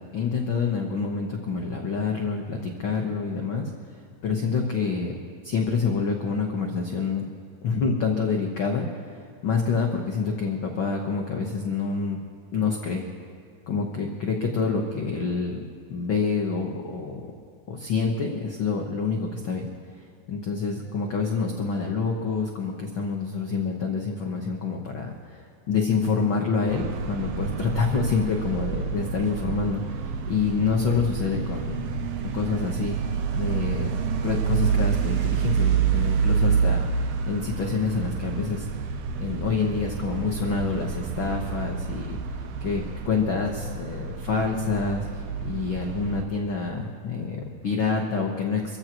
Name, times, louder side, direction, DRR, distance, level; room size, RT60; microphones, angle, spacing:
voice 1, 0.1-5.2 5.4-7.2 7.6-12.2 12.5-13.1 13.7-15.6 15.9-17.3 17.7-19.7 20.0-31.9 32.2-32.9 33.3-33.9 34.2-38.7 39.2-42.2 42.6-45.1 45.4-48.8, left 5 dB, 85° left, 1 dB, 1.1 m, -27 dB
three departures at bus station, 26.7-46.2, right 6 dB, 85° right, 1.4 m, -28 dB
25.0 x 15.5 x 3.0 m, 2.4 s
omnidirectional pair, 3.9 m